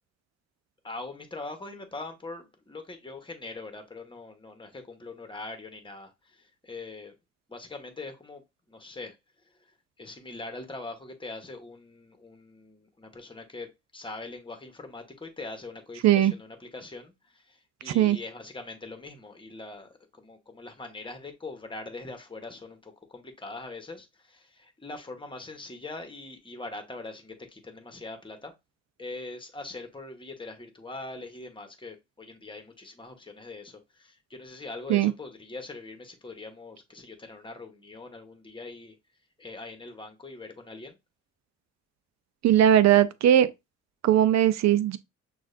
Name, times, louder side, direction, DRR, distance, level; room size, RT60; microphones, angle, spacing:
voice 1, 0.8-7.1 7.5-9.2 9.4-9.5 10.0-28.5 29.0-39.0 39.4-41.0, left 3 dB, 15° left, 1.1 m, -42 dB
voice 2, 17.9-18.2 34.9-35.1 42.4-43.5 44.0-45.0, right 11 dB, 60° right, 0.5 m, -19 dB
6.2 x 2.4 x 2.6 m
cardioid pair, 90°, 30 cm